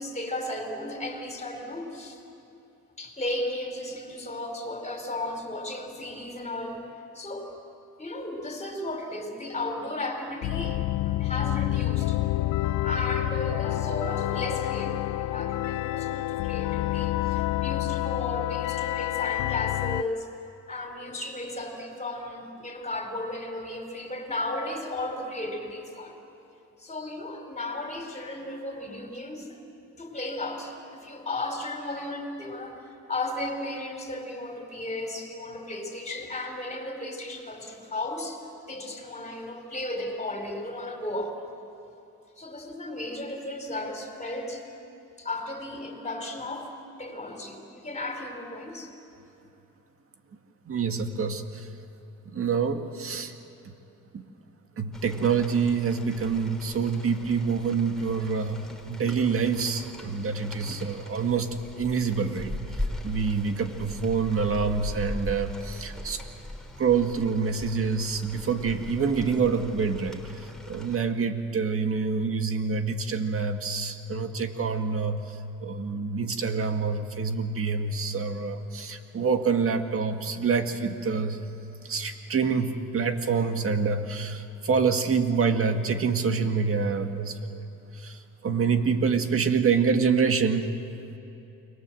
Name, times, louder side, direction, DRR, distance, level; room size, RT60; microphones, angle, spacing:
voice 1, 0.0-2.2 3.0-6.9 7.1-7.6 8.0-12.2 12.8-20.3 20.7-26.2 26.8-29.6 30.0-41.4 42.4-44.6 45.2-48.9, left 1 dB, 25° left, 3 dB, 4.9 m, -35 dB
sound 1, 10.4-20.0, left 16 dB, 80° left, 0.6 m, -28 dB
voice 2, 50.7-51.6 52.3-53.3 54.8-62.5 63.0-66.2 66.8-70.3 70.7-75.2 75.6-81.4 81.9-87.6 88.0-88.2 88.4-90.7, right 5 dB, 45° right, 6 dB, 2.0 m, -26 dB
Rain, 54.9-71.0, left 1 dB, ahead, 3.4 m, -40 dB
29.5 x 22.0 x 7.9 m, 3.0 s
cardioid pair, 90°, 30 cm